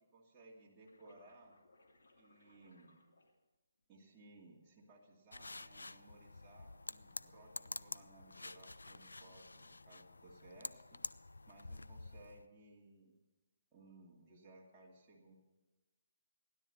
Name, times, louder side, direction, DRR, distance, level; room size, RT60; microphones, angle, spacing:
voice 1, 0.0-1.6 2.2-3.0 3.9-11.0 11.5-13.1 13.7-15.4, right 2 dB, 15° right, -6 dB, 2.6 m, -61 dB
sound 1, 0.8-3.8 4.6-5.1, left 2 dB, 70° left, 2.8 m, -69 dB
sound 2, 5.3-12.5, left 2 dB, 90° left, 0.4 m, -49 dB
16.5 x 11.5 x 5.4 m, 1.1 s
figure-of-eight pair, 145°, 0 cm